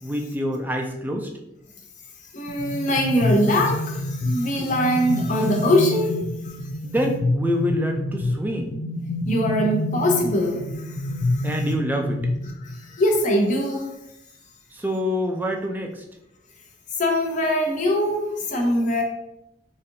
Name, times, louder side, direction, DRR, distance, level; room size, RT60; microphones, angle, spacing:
voice 1, 0.0-1.3 6.8-8.7 11.4-12.2 14.7-16.0, equal, 10° right, 2 dB, 0.4 m, -26 dB
voice 2, 2.3-6.2 6.4-6.6 9.3-11.5 12.6-13.9 17.0-19.0, left 1 dB, 45° left, 1 dB, 0.7 m, -22 dB
sound 1, 2.5-13.0, left 1 dB, 85° left, 0.4 m, -28 dB
4.0 x 2.7 x 2.6 m, 0.83 s
head